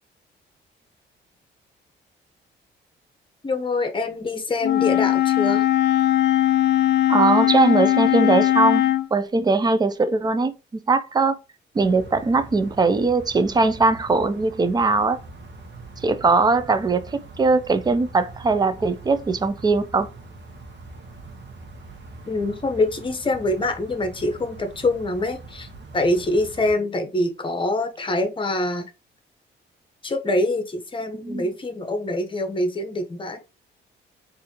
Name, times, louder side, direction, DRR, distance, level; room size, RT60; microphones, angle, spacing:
voice 1, 3.4-5.7 22.3-25.7 25.9-28.9 30.0-33.4, left 2 dB, 25° left, 0.9 m, -25 dB
Wind instrument woodwind instrument, 4.6-9.1, left 13 dB, 60° left, 0.4 m, -19 dB
voice 2, 7.1-10.5 10.9-11.4 11.7-15.2 16.0-20.1 31.2-31.5, right 3 dB, 20° right, 0.5 m, -20 dB
sound 1, 11.7-26.7, right 2 dB, 60° right, 1.0 m, -42 dB
4.0 x 2.7 x 2.8 m
cardioid pair, 90°, 20 cm